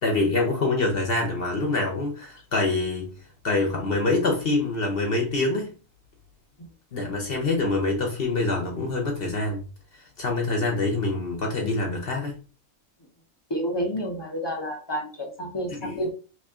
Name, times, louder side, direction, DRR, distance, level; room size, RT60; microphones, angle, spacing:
voice 1, 0.0-3.1 3.4-5.7 6.9-9.6 10.0-12.4 15.7-16.0, left 2 dB, 50° left, 0.9 m, -25 dB
voice 2, 13.5-16.1, equal, 35° left, 0.4 m, -30 dB
3.0 x 2.7 x 3.6 m
omnidirectional pair, 1.5 m